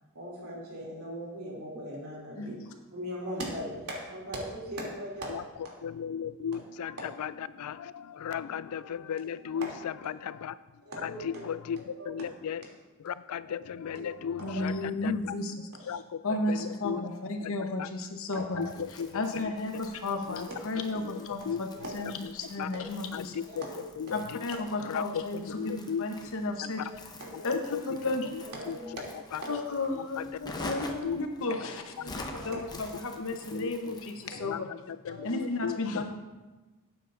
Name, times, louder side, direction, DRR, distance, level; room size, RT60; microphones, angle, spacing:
voice 1, 0.1-2.6 2.9-5.3 5.6-5.7 9.5-9.7 10.8-11.2 12.0-12.1 13.9-14.1 14.4-14.7 18.3-18.4 21.8-22.1 23.5-23.8 27.2-27.5 28.4-29.6 31.5-31.6 32.3-32.6 35.1-35.2, equal, 85° right, -3 dB, 2.9 m, -39 dB
voice 2, 2.4-2.7 14.4-15.5 16.2-18.8 19.1-21.7 21.9-23.3 24.1-25.4 25.6-26.8 27.4-27.6 27.8-28.3 29.5-34.7 35.2-36.1, left 2 dB, 65° left, 4 dB, 1.0 m, -33 dB
voice 3, 5.8-10.5 11.0-12.7 13.0-15.3 15.8-16.2 16.5-17.1 17.4-17.5 17.8-17.9 18.4-19.8 20.3-20.5 21.0-21.6 22.0-22.7 23.1-23.6 24.0-24.5 24.8-26.1 26.6-26.9 27.3-29.0 29.3-29.4 29.9-30.8 31.0-31.2 32.5-32.6 32.9-33.0 33.5-34.0 34.4-36.1, left 8 dB, 80° left, 15 dB, 0.4 m, -37 dB
Crumpling crinkling, 18.6-34.4, left 2 dB, 20° left, 0.8 m, -47 dB
12.5 x 9.2 x 2.6 m, 1.2 s
head